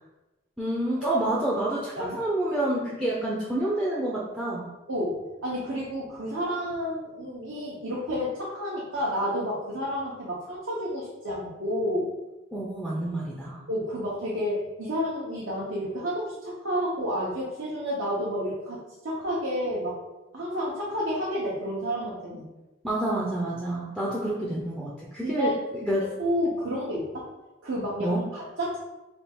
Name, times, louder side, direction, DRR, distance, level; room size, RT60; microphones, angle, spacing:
voice 1, 0.6-4.7 12.5-13.6 22.8-26.0 28.0-28.2, right 1 dB, 5° right, -5 dB, 0.4 m, -28 dB
voice 2, 4.9-12.1 13.7-20.0 20.3-22.5 25.2-25.5 26.2-27.3 27.6-28.8, equal, 75° right, -6 dB, 0.7 m, -30 dB
3.4 x 2.3 x 4.3 m, 1.1 s
head